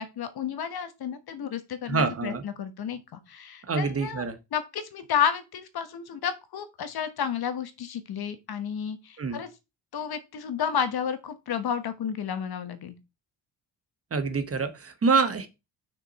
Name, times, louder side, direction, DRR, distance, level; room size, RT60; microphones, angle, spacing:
voice 1, 0.0-4.2 4.5-9.5 9.9-12.9, left 8 dB, 55° left, 1.3 m, -31 dB
voice 2, 1.9-2.4 3.7-4.4 9.2-9.4 14.1-15.5, right 4 dB, 30° right, 1.0 m, -26 dB
6.2 x 5.2 x 4.1 m
cardioid pair, 120°, 46 cm